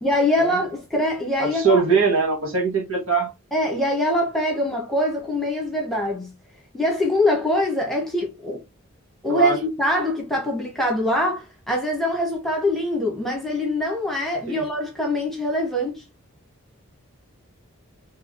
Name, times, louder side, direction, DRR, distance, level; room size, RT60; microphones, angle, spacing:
voice 1, 0.0-1.8 3.5-6.3 6.7-8.6 9.2-16.0, left 1 dB, ahead, 1.3 m, -23 dB
voice 2, 1.4-3.3 9.3-9.6 14.5-14.6, right 5 dB, 70° right, 1.8 m, -21 dB
4.7 x 3.0 x 3.0 m
head